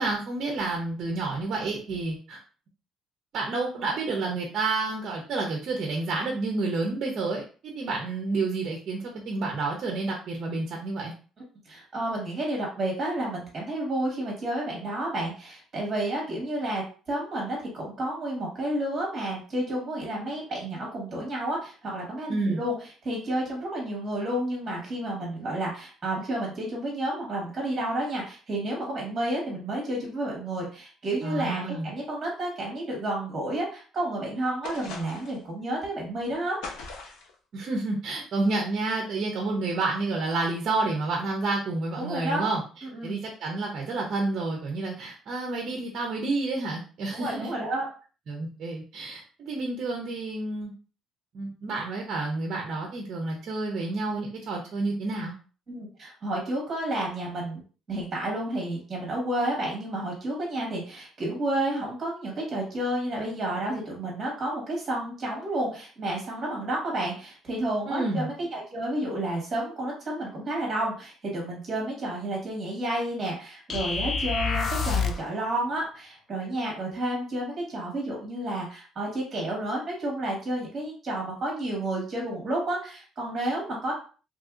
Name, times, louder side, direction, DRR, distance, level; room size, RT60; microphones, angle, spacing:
voice 1, 0.0-2.4 3.3-11.1 22.3-22.6 31.2-31.9 37.5-42.6 43.0-47.5 48.3-50.7 51.3-55.3 67.9-68.3, right 3 dB, 40° right, 1 dB, 0.6 m, -29 dB
voice 2, 11.7-22.7 23.0-36.6 42.0-42.5 42.8-43.2 47.1-47.9 55.7-57.6 57.9-83.9, right 1 dB, 25° right, -2 dB, 1.3 m, -31 dB
sound 1, 34.6-35.4 36.6-37.3, left 3 dB, 80° left, 0.7 m, -39 dB
sound 2, 73.7-75.3, left 5 dB, 35° left, 0.3 m, -27 dB
2.9 x 2.6 x 2.4 m, 0.37 s
cardioid pair, 165°, 0 cm